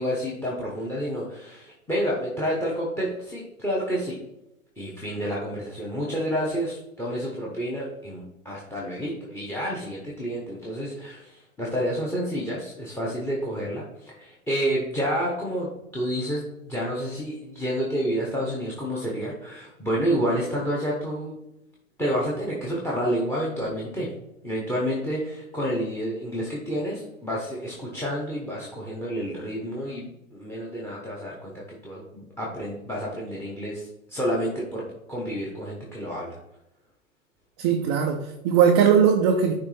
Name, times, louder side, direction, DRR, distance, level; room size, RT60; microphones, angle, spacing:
voice 1, 0.0-4.2 4.8-21.4 22.0-24.1 24.4-31.5 31.8-36.4, equal, 5° left, -3 dB, 0.9 m, -29 dB
voice 2, 37.6-39.5, right 7 dB, 25° right, 3 dB, 0.3 m, -19 dB
9.7 x 3.3 x 3.2 m, 0.88 s
hypercardioid pair, 115°, 41 cm